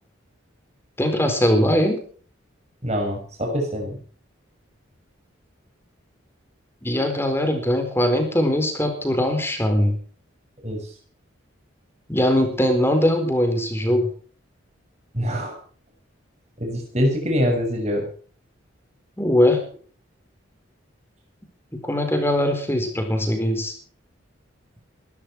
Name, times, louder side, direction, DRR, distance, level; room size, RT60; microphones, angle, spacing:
voice 1, 1.0-2.0 6.8-10.0 12.1-14.1 19.2-19.6 21.8-23.7, left 1 dB, 10° left, 6 dB, 4.1 m, -21 dB
voice 2, 2.8-4.0 10.6-10.8 15.1-15.5 16.6-18.0, equal, 35° right, 1 dB, 6.6 m, -24 dB
21.5 x 13.0 x 4.6 m, 0.43 s
head